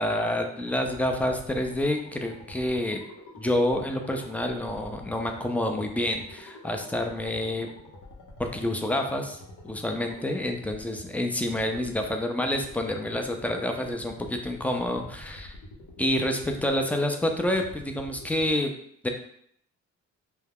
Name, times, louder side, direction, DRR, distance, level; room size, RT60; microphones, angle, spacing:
voice 1, 0.0-3.0 3.4-7.7 8.4-9.4 9.7-15.5 16.0-18.7 19.0-19.1, left 1 dB, 5° left, 3 dB, 0.3 m, -28 dB
sound 1, 0.6-18.5, left 2 dB, 90° left, 0.8 m, -47 dB
2.3 x 2.1 x 3.4 m, 0.66 s
cardioid pair, 90°, 30 cm